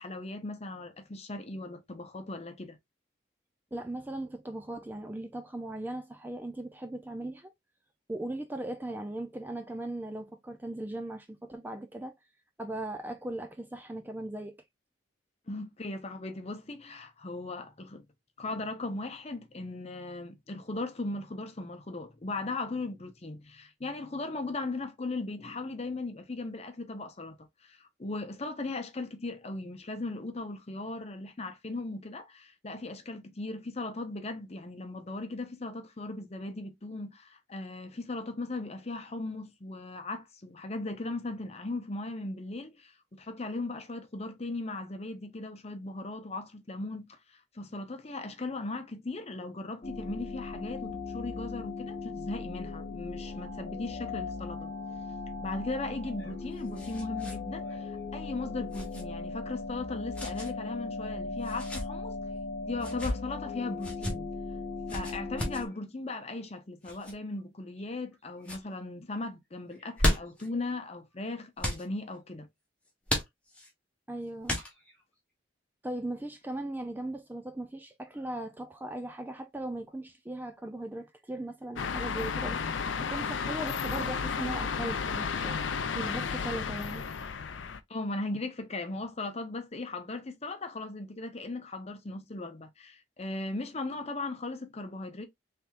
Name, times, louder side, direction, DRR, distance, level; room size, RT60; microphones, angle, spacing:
voice 1, 0.0-2.8 15.5-18.1 18.4-54.7 55.4-62.2 62.6-64.3 64.9-72.5 87.9-95.2, left 2 dB, 35° left, 0.8 m, -38 dB
voice 2, 3.7-7.5 8.1-12.1 12.6-14.5 74.1-74.6 75.8-87.1, right 1 dB, 10° right, 0.4 m, -38 dB
sound 1, 49.8-65.7, left 3 dB, 50° left, 1.1 m, -38 dB
sound 2, 56.0-57.4 57.7-57.8 58.7-59.0 60.1-60.5 61.4-61.9 62.7-63.2 63.8-64.1 64.9-65.6 66.8-67.1 67.8-68.1 68.4-68.6 69.7-70.5 71.6-71.8 73.1-73.7 74.4-75.0, left 1 dB, 5° left, 1.3 m, -33 dB
sound 3, 81.8-87.8, left 6 dB, 85° left, 0.5 m, -33 dB
4.3 x 3.4 x 2.4 m
head